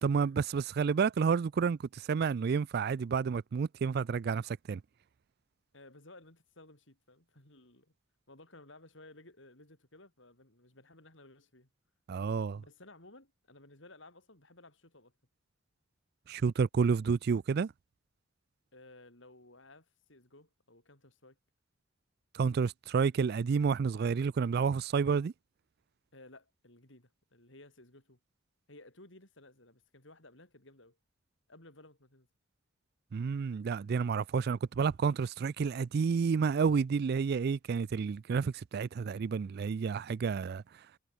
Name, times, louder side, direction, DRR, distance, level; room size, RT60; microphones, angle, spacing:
voice 1, 0.0-4.8 12.1-12.6 16.3-17.7 22.3-25.3 33.1-40.6, right 5 dB, 50° right, 0.4 m, -30 dB
voice 2, 5.7-7.9 8.3-11.7 12.5-15.1 18.7-21.4 26.1-28.2 28.7-31.0 31.5-32.3, left 2 dB, 65° left, 6.8 m, -57 dB
head